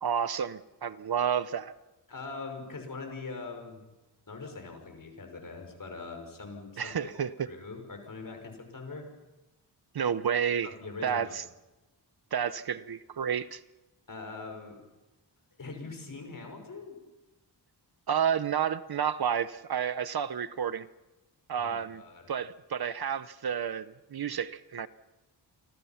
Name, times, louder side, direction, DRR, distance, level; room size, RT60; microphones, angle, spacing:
voice 1, 0.0-1.7 6.8-7.3 9.9-10.7 11.0-11.4 12.3-13.6 18.1-20.9 21.5-22.0 22.3-24.9, right 8 dB, 60° right, 15 dB, 0.9 m, -30 dB
voice 2, 2.1-3.8 4.3-9.1 10.6-11.4 14.1-14.8 15.6-17.0 21.6-22.3, left 3 dB, 50° left, 4 dB, 5.8 m, -42 dB
29.0 x 25.5 x 5.9 m, 1.1 s
wide cardioid pair, 120°, 43 cm